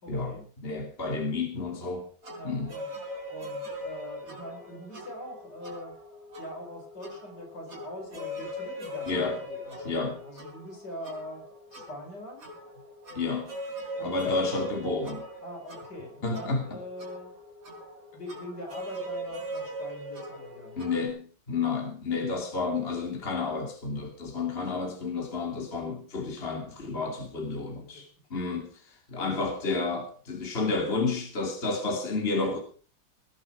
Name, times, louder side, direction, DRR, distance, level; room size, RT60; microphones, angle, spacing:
voice 1, 0.0-0.5 2.4-2.9 3.3-6.0 6.4-12.5 14.0-14.4 15.4-17.3 18.1-20.8 24.6-24.7 27.7-28.4 29.1-29.4, left 1 dB, 60° left, 2 dB, 5.5 m, -43 dB
voice 2, 0.6-2.1 2.4-2.7 9.1-9.4 9.8-10.2 13.1-13.5 14.0-15.3 16.2-16.6 20.8-32.6, left 3 dB, 30° left, 3 dB, 2.9 m, -31 dB
sound 1, 2.2-21.1, equal, 45° right, 5.9 m, -40 dB
19.5 x 11.0 x 5.0 m, 0.39 s
omnidirectional pair, 2.1 m